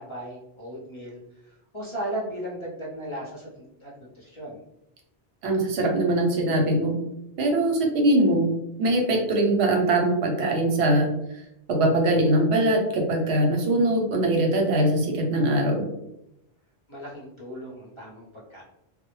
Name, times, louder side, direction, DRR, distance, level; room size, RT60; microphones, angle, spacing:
voice 1, 0.0-3.5 3.8-4.6 16.9-18.6, right 1 dB, 35° left, -6 dB, 0.6 m, -36 dB
voice 2, 5.4-7.0 7.4-8.5 8.8-11.1 11.7-15.8, right 1 dB, 80° right, 2 dB, 0.9 m, -22 dB
2.1 x 2.0 x 3.0 m, 0.84 s
omnidirectional pair, 1.1 m